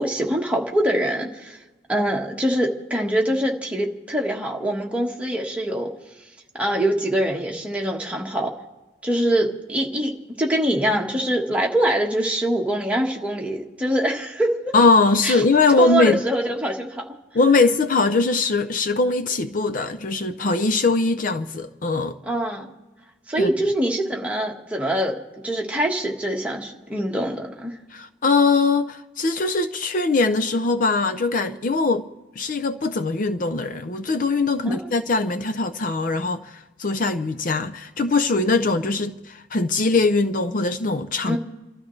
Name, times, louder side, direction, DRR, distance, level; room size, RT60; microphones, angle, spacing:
voice 1, 0.0-1.6 1.9-5.9 6.5-8.5 9.0-10.1 10.4-14.7 15.2-15.4 15.8-17.0 22.2-22.7 23.3-27.7 34.6-34.8 41.3-41.4, right 1 dB, 5° right, 1.5 m, -24 dB
voice 2, 14.7-16.2 17.3-22.2 23.4-23.5 27.9-32.1 32.4-41.4, left 3 dB, 50° left, 0.5 m, -21 dB
29.5 x 13.0 x 3.2 m
head